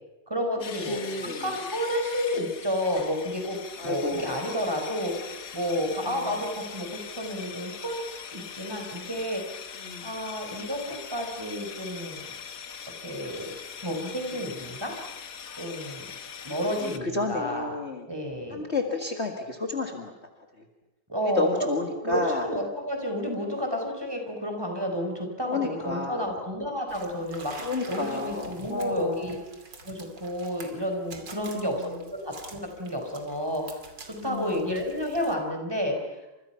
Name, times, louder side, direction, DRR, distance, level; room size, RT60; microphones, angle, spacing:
voice 1, 0.3-9.6 10.0-12.3 13.0-13.5 13.8-14.9 15.6-16.1 16.4-17.7 18.1-18.6 21.1-21.7 22.0-29.4 29.8-36.2, equal, 15° right, 3 dB, 4.7 m, -31 dB
sound 1, 0.6-17.0, left 7 dB, 55° left, 1.6 m, -41 dB
voice 2, 0.9-1.5 3.8-4.3 6.1-6.2 9.8-10.1 16.8-18.1 18.5-20.1 21.4-22.5 25.4-26.4 27.6-29.3 31.4-31.8 34.2-34.7, left 3 dB, 40° left, 3 dB, 2.2 m, -31 dB
sound 2, 26.9-35.3, right 3 dB, 80° right, 3.4 m, -47 dB
30.0 x 27.0 x 5.8 m, 1.0 s
omnidirectional pair, 1.9 m